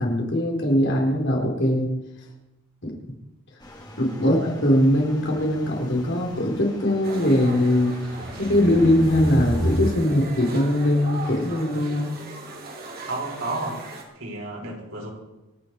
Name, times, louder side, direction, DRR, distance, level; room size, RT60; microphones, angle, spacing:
voice 1, 0.0-1.9 2.8-3.0 4.0-7.9 8.4-12.1, left 1 dB, 60° left, 0 dB, 4.3 m, -21 dB
sound 1, 3.6-9.8, equal, 20° left, 2.9 m, -34 dB
sound 2, 7.0-14.0, right 2 dB, 45° right, 3.1 m, -39 dB
voice 2, 13.1-13.8 14.1-15.1, right 2 dB, 75° right, -2 dB, 5.9 m, -31 dB
27.5 x 9.5 x 4.7 m, 1.0 s
head